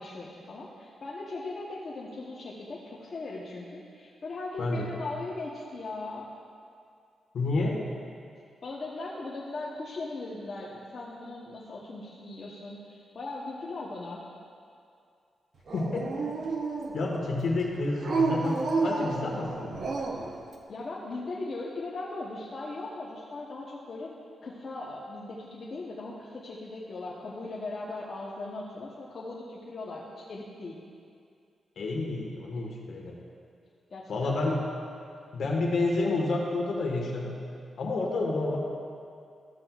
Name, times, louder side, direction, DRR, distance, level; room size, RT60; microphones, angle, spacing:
voice 1, 0.0-6.3 8.6-14.2 20.7-24.1 24.4-30.8 33.9-34.3, left 2 dB, 45° left, -5 dB, 0.9 m, -39 dB
voice 2, 7.3-7.8 15.7-16.2 16.9-19.8 31.8-33.2 34.1-34.6 35.3-37.4 37.8-38.6, left 2 dB, 70° left, -1 dB, 1.4 m, -29 dB
Dog, 15.7-17.2 18.0-20.3, right 3 dB, 55° right, 0.8 m, -30 dB
13.5 x 7.5 x 2.4 m, 2.4 s
cardioid pair, 105°, 0 cm